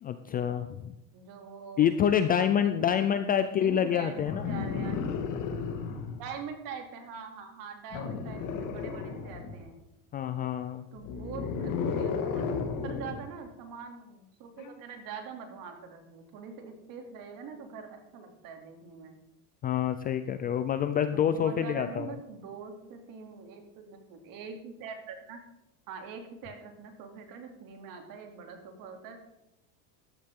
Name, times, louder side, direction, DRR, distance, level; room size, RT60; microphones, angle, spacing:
voice 1, 0.0-0.9 1.8-4.4 10.1-10.9 19.6-22.1, left 9 dB, 25° left, 9 dB, 0.3 m, -27 dB
voice 2, 1.1-1.9 2.3-5.0 6.2-9.8 10.9-19.2 21.1-25.4 25.9-29.2, right 5 dB, 50° right, 4 dB, 2.8 m, -44 dB
sound 1, 4.3-6.2 7.9-9.7 11.0-13.2 14.6-14.7, left 5 dB, 45° left, 1.9 m, -33 dB
14.5 x 12.0 x 3.7 m, 0.91 s
cardioid pair, 150°, 43 cm